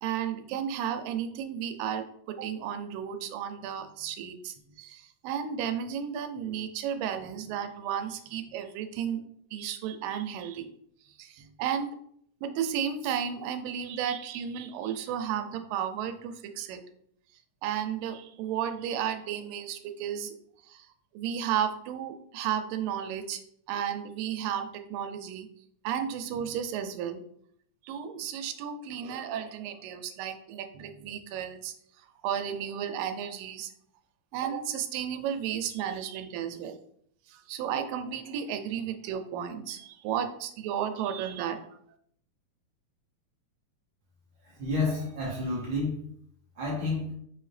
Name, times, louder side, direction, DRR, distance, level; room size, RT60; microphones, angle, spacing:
voice 1, 0.0-9.2 9.5-10.7 11.1-11.9 12.4-16.8 17.6-20.4 20.6-20.9 21.1-23.4 23.7-25.5 25.8-27.2 27.8-33.7 34.3-36.8 37.3-41.6, right 9 dB, 90° right, 7 dB, 2.2 m, -33 dB
voice 2, 44.4-46.0 46.6-47.1, left 2 dB, 65° right, -5 dB, 1.1 m, -30 dB
5.5 x 2.8 x 3.2 m, 0.68 s
omnidirectional pair, 3.8 m